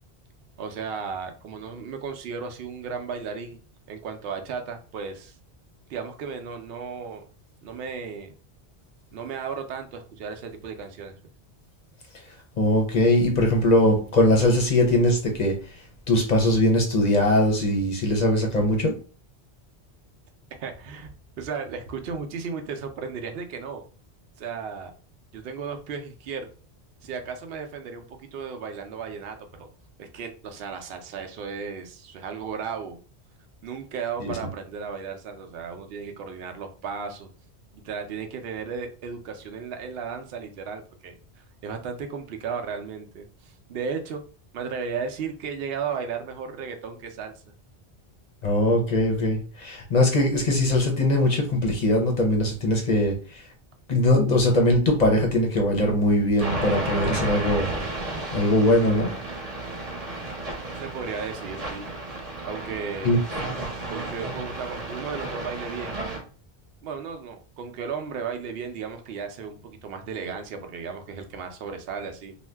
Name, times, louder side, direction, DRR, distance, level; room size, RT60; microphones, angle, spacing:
voice 1, 0.6-3.6 3.9-5.3 5.9-7.2 7.6-8.3 9.1-11.1 20.6-21.1 21.4-23.8 24.4-24.9 25.3-26.5 27.0-29.7 30.0-33.0 33.6-37.3 37.7-44.2 44.5-47.5 60.7-61.9 62.4-63.2 63.9-66.0 66.8-72.4, right 6 dB, 70° right, 5 dB, 0.7 m, -35 dB
voice 2, 12.6-15.6 16.1-18.9 34.2-34.3 48.4-53.4 53.9-57.7 58.3-59.1 63.0-63.2, left 1 dB, 45° left, 1 dB, 0.6 m, -21 dB
sound 1, 56.4-66.2, right 2 dB, 35° right, 0.8 m, -32 dB
2.5 x 2.1 x 3.3 m, 0.38 s
omnidirectional pair, 1.1 m